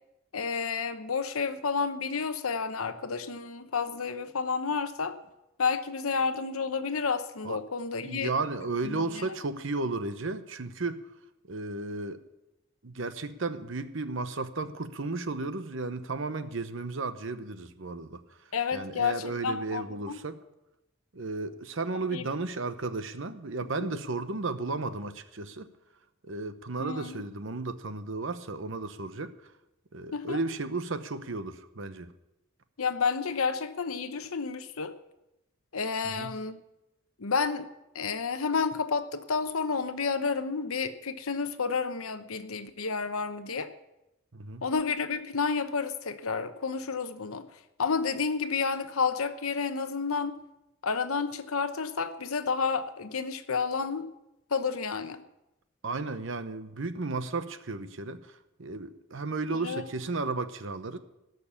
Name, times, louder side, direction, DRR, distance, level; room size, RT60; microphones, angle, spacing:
voice 1, 0.3-5.1 5.6-8.3 8.8-9.2 18.5-20.2 22.1-22.3 23.8-23.9 26.8-27.2 30.1-30.4 32.8-34.9 35.7-36.6 37.2-37.7 37.9-43.7 44.6-47.4 47.8-50.4 50.8-54.1 54.5-55.2 59.6-59.8, left 5 dB, 80° left, 10 dB, 0.9 m, -30 dB
voice 2, 8.0-11.0 11.5-12.2 12.8-18.2 18.7-20.4 21.1-25.7 26.2-29.3 29.9-32.1 36.0-36.3 44.3-44.6 55.8-61.0, right 3 dB, 65° right, 11 dB, 0.9 m, -34 dB
17.5 x 6.7 x 7.1 m, 0.92 s
head